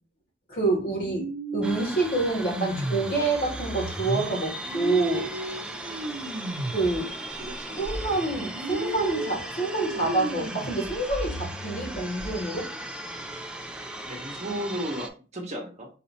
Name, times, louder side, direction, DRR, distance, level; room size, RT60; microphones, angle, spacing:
voice 1, 0.5-1.3 1.5-5.3 6.7-7.1 7.8-12.7, right 2 dB, 50° left, -2 dB, 2.0 m, -27 dB
sound 1, 0.9-7.0 7.4-12.3, right 1 dB, 70° right, 0.7 m, -34 dB
sound 2, 1.6-15.1, right 1 dB, 5° right, 0.4 m, -38 dB
voice 2, 7.3-7.9 14.0-15.9, equal, 35° right, 0 dB, 1.0 m, -35 dB
4.2 x 2.8 x 4.0 m, 0.35 s
head